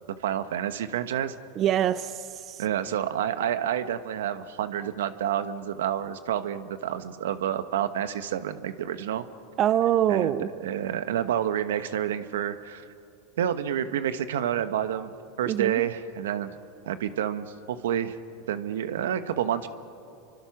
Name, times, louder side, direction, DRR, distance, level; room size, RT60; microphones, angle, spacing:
voice 1, 0.2-1.3 2.6-9.2 10.1-12.9 13.4-15.1 15.4-16.5 16.8-18.2 18.5-19.7, right 10 dB, 90° right, 11 dB, 1.2 m, -29 dB
voice 2, 1.6-2.6 9.6-10.5 15.5-15.8, right 11 dB, 40° right, 15 dB, 0.6 m, -24 dB
28.5 x 24.0 x 6.0 m, 2.6 s
supercardioid pair, 115°, 0 cm